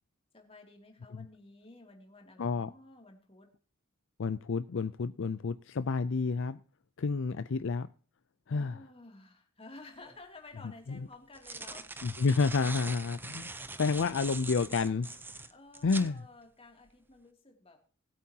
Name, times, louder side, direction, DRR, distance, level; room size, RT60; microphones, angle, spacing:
voice 1, 0.3-3.5 8.5-12.1 13.6-13.7 14.1-14.3 15.5-17.8, left 2 dB, 25° left, 3 dB, 2.6 m, -53 dB
voice 2, 2.4-2.7 4.2-6.6 7.0-7.9 8.5-8.8 12.0-15.5 15.8-16.2, left 4 dB, 60° left, 13 dB, 0.5 m, -30 dB
sound 1, 10.1-10.2 11.1-16.1, right 3 dB, 10° right, 0.6 m, -42 dB
20.0 x 8.6 x 2.8 m, 0.41 s
head